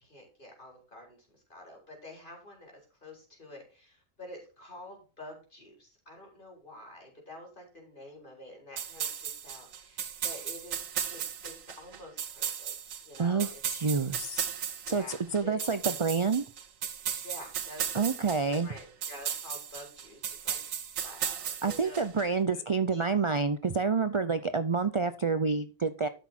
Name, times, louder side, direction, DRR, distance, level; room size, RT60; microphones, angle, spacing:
voice 1, 0.0-12.7 13.0-13.6 14.8-15.6 17.2-18.0 18.6-20.6 20.9-22.1 22.5-22.6 22.9-23.1, left 1 dB, 35° left, 0 dB, 4.2 m, -48 dB
sound 1, 8.8-22.2, right 8 dB, 75° right, 1.4 m, -36 dB
voice 2, 13.2-14.5 14.9-16.4 17.9-18.7 21.6-26.1, right 4 dB, 50° right, 10 dB, 0.3 m, -28 dB
12.5 x 6.2 x 4.3 m, 0.35 s
omnidirectional pair, 1.4 m